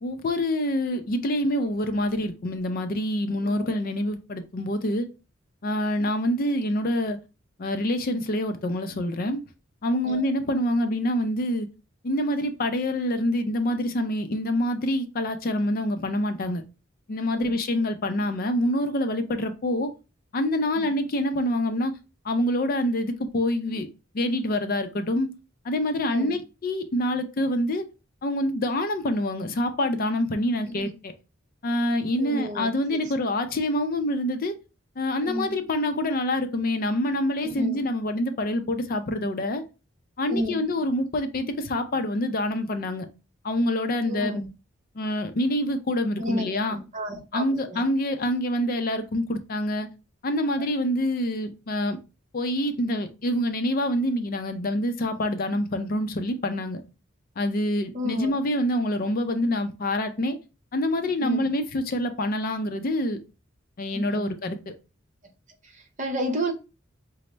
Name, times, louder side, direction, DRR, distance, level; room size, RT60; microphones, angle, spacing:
voice 1, 0.0-5.1 5.6-7.2 7.6-9.4 9.8-11.7 12.0-16.6 17.1-19.9 20.3-21.9 22.2-23.9 24.1-25.3 25.6-27.9 28.2-31.1 31.6-34.6 35.0-39.6 40.2-43.1 43.4-44.4 45.0-46.8 47.3-49.9 50.2-52.0 52.3-56.8 57.4-60.4 60.7-63.2 63.8-64.7, left 1 dB, 45° left, 0.5 m, -26 dB
voice 2, 3.4-3.8 10.0-10.2 17.3-17.6 20.8-20.9 26.1-26.3 30.7-30.9 32.2-32.7 35.2-35.6 37.4-37.8 40.3-40.6 44.0-44.5 46.2-47.8 57.9-58.3 61.2-61.5 63.9-64.3 65.7-66.5, equal, 40° right, 0.8 m, -31 dB
5.1 x 2.0 x 3.2 m
head